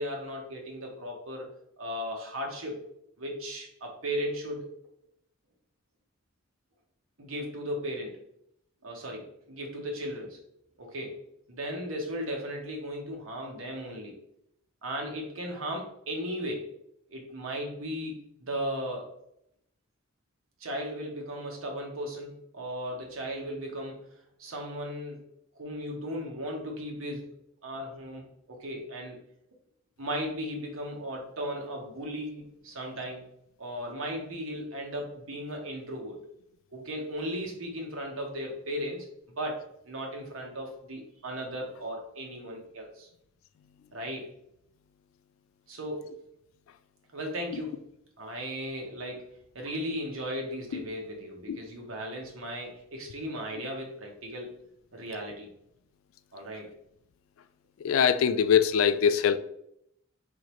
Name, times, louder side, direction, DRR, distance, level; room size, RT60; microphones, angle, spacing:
voice 1, 0.0-2.8 3.2-4.7 7.2-8.2 8.8-10.4 10.8-14.2 14.8-16.7 17.1-19.1 20.6-24.1 24.4-25.2 25.5-27.3 27.6-29.2 30.0-33.2 33.6-36.2 36.7-39.1 39.3-43.1 43.9-44.4 45.7-46.1 47.1-47.8 48.2-49.3 49.5-54.5 54.9-55.5 56.3-56.7, equal, 80° right, 1.2 m, -36 dB
voice 2, 57.8-59.4, left 7 dB, 75° left, 0.3 m, -23 dB
4.2 x 3.7 x 3.1 m
head